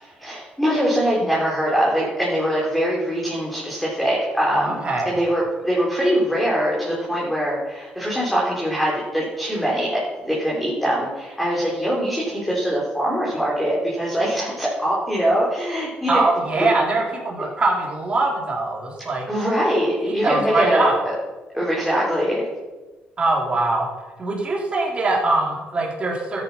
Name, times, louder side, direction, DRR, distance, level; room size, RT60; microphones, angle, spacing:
voice 1, 0.2-4.8 5.0-16.2 16.6-16.7 19.3-21.1 21.5-22.4, equal, 5° left, -6 dB, 3.8 m, -22 dB
voice 2, 4.5-5.2 16.1-19.3 20.1-21.0 23.2-23.9 24.2-26.4, right 2 dB, 30° right, -2 dB, 3.6 m, -22 dB
13.0 x 9.1 x 5.7 m, 1.2 s
cardioid pair, 105°, 4 cm